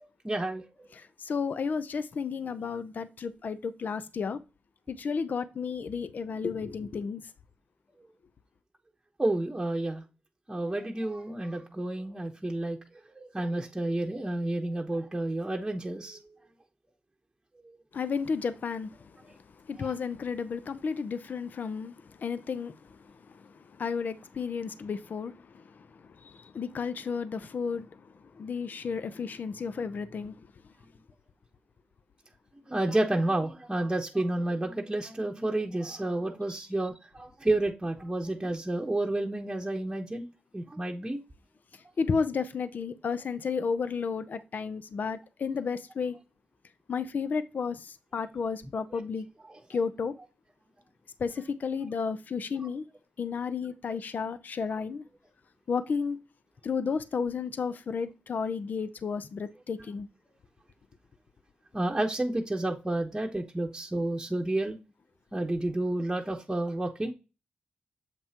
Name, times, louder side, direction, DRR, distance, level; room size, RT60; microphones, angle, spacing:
voice 1, 0.2-0.6 9.2-10.0 10.5-12.8 13.2-16.2 19.8-19.9 32.7-40.3 40.5-41.2 48.9-49.0 49.5-49.6 61.7-64.8 65.3-67.1, right 1 dB, 15° right, 1.0 m, -30 dB
voice 2, 1.0-4.4 4.9-7.2 17.9-18.9 19.7-21.9 22.2-22.7 23.8-25.3 26.2-27.9 28.4-30.3 42.0-46.2 46.9-49.3 49.7-50.1 51.2-52.8 53.2-55.0 55.7-56.2 56.6-60.1, left 5 dB, 60° left, 0.6 m, -32 dB
7.5 x 5.3 x 2.9 m
cardioid pair, 70°, 3 cm